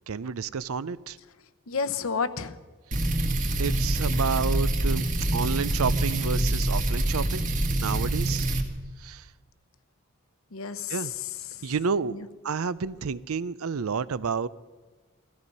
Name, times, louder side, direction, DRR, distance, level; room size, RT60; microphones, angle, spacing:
voice 1, 0.1-1.2 3.6-5.0 5.3-7.5 7.8-8.5 9.0-9.3 10.9-11.1 11.6-14.5, right 5 dB, 75° right, 18 dB, 0.5 m, -30 dB
voice 2, 1.7-2.6 10.5-11.7 12.1-12.3, left 5 dB, 70° left, 11 dB, 0.9 m, -31 dB
sound 1, 2.9-8.6, right 1 dB, 35° right, 1.7 m, -25 dB
17.5 x 14.5 x 5.4 m, 1.3 s
head